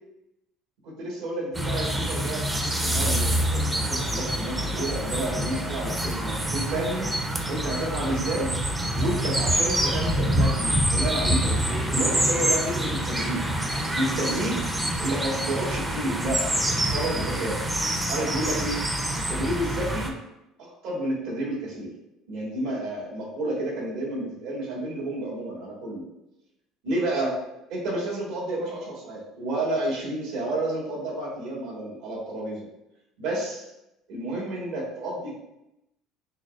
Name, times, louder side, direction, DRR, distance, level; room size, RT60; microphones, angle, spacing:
voice 1, 0.8-7.1 7.5-8.5 8.9-13.4 13.7-14.6 15.0-17.6 18.1-18.8 19.3-20.2 20.6-21.9 22.3-26.0 26.8-27.4 27.7-32.6 33.2-33.7 34.1-35.3, right 1 dB, 75° right, -3 dB, 1.5 m, -30 dB
sound 1, 1.5-20.1, right 1 dB, 10° right, 0.4 m, -26 dB
6.1 x 2.1 x 2.4 m, 0.88 s
cardioid pair, 145°, 0 cm